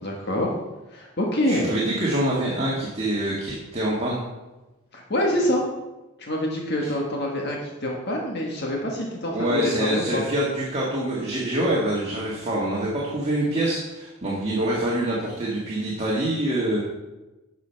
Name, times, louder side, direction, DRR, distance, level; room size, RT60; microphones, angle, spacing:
voice 1, 0.0-0.5 0.9-1.7 4.9-5.6 6.2-10.2, left 1 dB, 50° left, -1 dB, 1.5 m, -26 dB
voice 2, 1.4-4.2 9.3-16.8, right 1 dB, 30° right, -5 dB, 1.7 m, -25 dB
11.5 x 6.7 x 4.6 m, 1.1 s
head